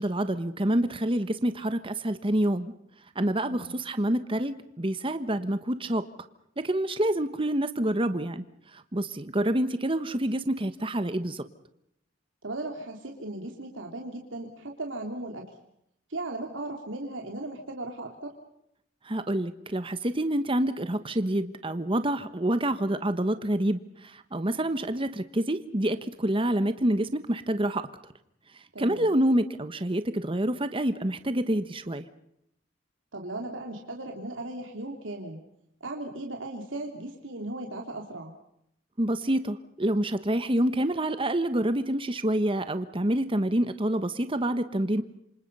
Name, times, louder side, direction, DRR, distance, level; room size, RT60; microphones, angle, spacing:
voice 1, 0.0-2.7 3.1-6.0 6.6-8.4 8.7-11.4 19.0-27.9 28.8-32.0 39.0-45.0, right 1 dB, 30° right, 11 dB, 1.2 m, -27 dB
voice 2, 12.4-15.5 16.1-18.3 28.7-29.1 33.1-35.4 35.8-38.3, right 2 dB, 85° right, 2 dB, 3.2 m, -37 dB
28.0 x 26.5 x 5.5 m, 0.75 s
head